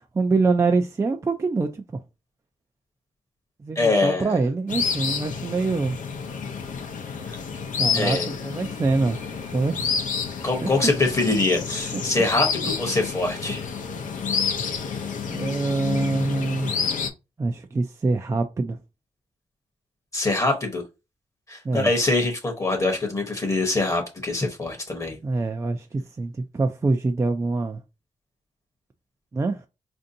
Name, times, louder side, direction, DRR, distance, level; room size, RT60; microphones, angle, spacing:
voice 1, 0.1-2.0 3.6-6.0 7.8-9.2 9.5-9.9 15.3-16.7 17.4-18.8 21.6-21.9 25.2-27.8 29.3-29.6, right 3 dB, 20° right, 0.4 m, -24 dB
voice 2, 3.8-4.4 7.3-7.4 7.9-8.3 10.4-13.6 20.1-20.8 21.5-25.2, left 2 dB, 25° left, 0.9 m, -24 dB
sound 1, 4.7-17.1, left 6 dB, 85° left, 0.6 m, -29 dB
4.4 x 2.6 x 2.6 m
wide cardioid pair, 155°, 13 cm